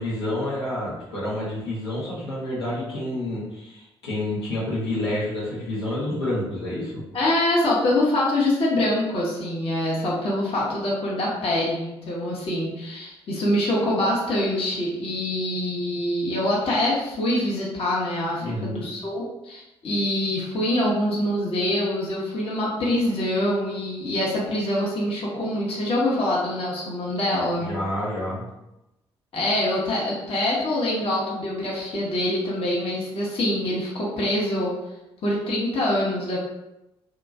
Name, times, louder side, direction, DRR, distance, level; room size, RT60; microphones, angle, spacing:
voice 1, 0.0-7.0 18.4-18.9 27.6-28.4, left 1 dB, 90° left, -9 dB, 0.9 m, -29 dB
voice 2, 7.1-27.7 29.3-34.7 35.2-36.4, left 1 dB, 45° left, -5 dB, 0.9 m, -25 dB
2.8 x 2.5 x 2.3 m, 0.92 s
figure-of-eight pair, 45°, 13 cm